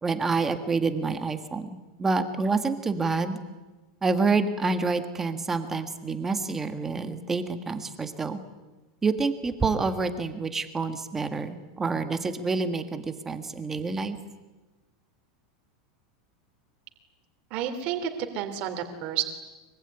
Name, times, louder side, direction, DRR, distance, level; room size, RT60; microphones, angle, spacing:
voice 1, 0.0-3.4 4.0-8.4 9.0-14.2, right 4 dB, 10° right, 9 dB, 1.6 m, -28 dB
voice 2, 17.5-19.2, right 9 dB, 35° right, 5 dB, 3.2 m, -30 dB
24.5 x 24.5 x 9.9 m, 1.2 s
supercardioid pair, 175°, 3 cm